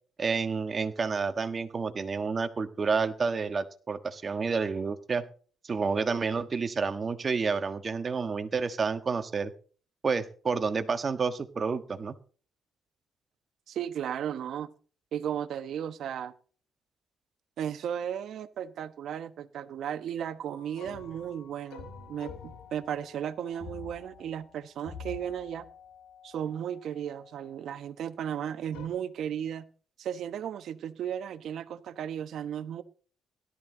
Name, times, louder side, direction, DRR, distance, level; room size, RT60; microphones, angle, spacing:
voice 1, 0.2-5.2 5.6-9.5 10.0-12.2, right 5 dB, 35° right, 1.5 m, -29 dB
voice 2, 13.7-14.7 15.1-16.3 17.6-25.7 26.2-29.7 30.0-32.8, right 9 dB, 70° right, 1.1 m, -35 dB
sound 1, 20.5-27.4 28.7-28.9, left 6 dB, 90° left, 2.7 m, -47 dB
17.0 x 13.0 x 3.9 m
cardioid pair, 90°, 0 cm